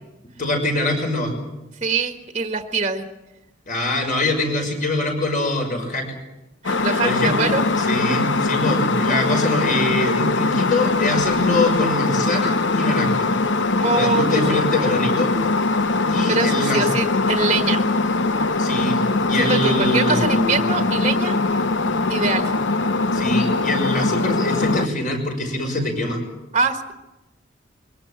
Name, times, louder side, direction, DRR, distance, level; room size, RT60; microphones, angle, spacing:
voice 1, 0.4-1.3 3.7-6.0 7.0-7.4 7.8-13.3 13.9-15.3 16.1-16.9 18.6-19.0 19.3-20.5 23.1-26.2, left 2 dB, 45° left, 3 dB, 6.0 m, -23 dB
voice 2, 1.8-3.0 6.6-7.6 13.8-14.9 16.3-17.9 19.3-21.7 22.1-22.5 26.5-26.8, right 4 dB, 35° right, 6 dB, 1.4 m, -24 dB
sound 1, 6.6-24.9, left 3 dB, 75° left, 0.9 m, -21 dB
23.0 x 18.0 x 8.9 m, 0.99 s
head